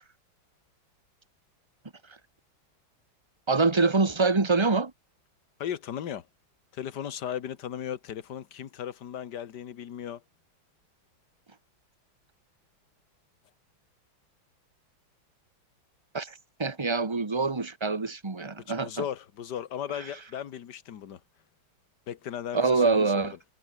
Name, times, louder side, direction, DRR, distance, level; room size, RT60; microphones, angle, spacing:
voice 1, 3.5-4.9 16.1-19.0 22.5-23.3, right 3 dB, 15° right, 1.3 m, -25 dB
voice 2, 5.6-6.3 6.7-10.2 18.7-21.2 22.1-23.3, left 9 dB, 60° left, 1.8 m, -36 dB
omnidirectional pair, 2.2 m